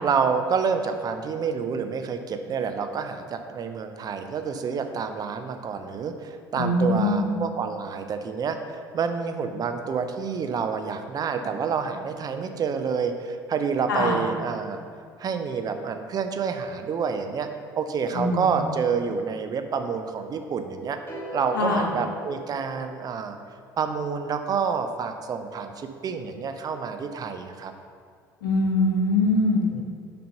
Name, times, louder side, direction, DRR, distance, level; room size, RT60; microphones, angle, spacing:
voice 1, 0.0-14.8 15.2-17.5 17.8-21.0 21.3-23.4 23.8-27.7 29.7-29.8, right 6 dB, 35° right, 7 dB, 0.5 m, -28 dB
voice 2, 6.6-7.4 13.9-14.2 18.1-18.5 21.5-21.9 28.4-29.6, left 2 dB, 75° left, -1 dB, 1.0 m, -23 dB
sound 1, 21.1-23.4, left 2 dB, 20° left, 1.6 m, -40 dB
6.4 x 4.3 x 5.6 m, 2.1 s
figure-of-eight pair, 60°, 11 cm